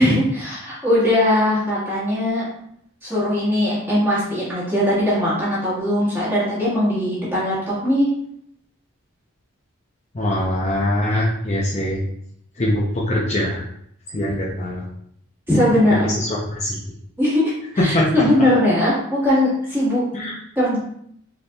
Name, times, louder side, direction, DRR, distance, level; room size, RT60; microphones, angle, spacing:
voice 1, 0.0-2.5 3.0-8.1 15.5-16.1 17.2-20.0 20.5-20.8, left 1 dB, 10° right, -9 dB, 1.4 m, -20 dB
voice 2, 10.1-12.0 12.6-13.6 14.1-14.8 15.9-16.7 17.8-18.2 20.1-20.3, left 1 dB, 30° left, -4 dB, 0.5 m, -22 dB
4.1 x 3.4 x 2.3 m, 0.71 s
head